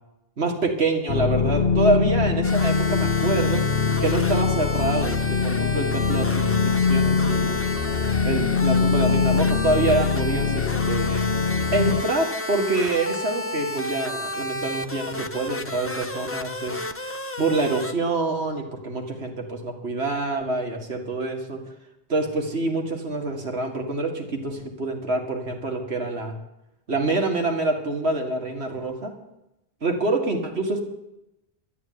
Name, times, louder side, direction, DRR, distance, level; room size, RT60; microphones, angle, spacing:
voice 1, 0.4-3.6 4.0-7.6 8.2-11.3 11.7-16.8 17.4-21.6 22.1-26.3 26.9-29.1 29.8-30.8, right 2 dB, 70° right, 3 dB, 2.3 m, -26 dB
sound 1, 1.1-12.0, left 5 dB, 55° left, 0.7 m, -23 dB
sound 2, 2.4-17.9, left 1 dB, 15° left, 0.7 m, -32 dB
12.5 x 9.0 x 9.5 m, 0.90 s
omnidirectional pair, 1.1 m